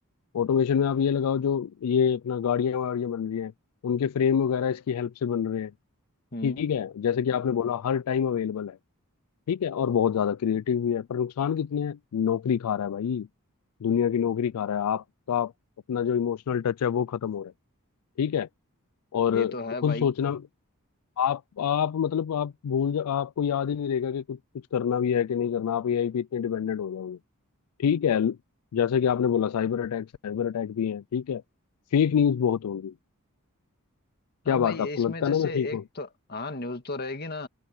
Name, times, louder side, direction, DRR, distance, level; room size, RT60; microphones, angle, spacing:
voice 1, 0.3-3.5 3.8-5.7 6.4-8.8 9.5-13.3 13.8-15.5 15.9-17.5 18.2-18.5 19.1-19.5 19.8-20.4 21.2-24.4 24.7-27.2 27.8-28.4 28.7-31.4 31.9-32.9 34.5-35.8, left 8 dB, 85° left, 0.4 m, -26 dB
voice 2, 19.3-20.1 34.4-37.5, left 2 dB, 45° left, 2.0 m, -35 dB
head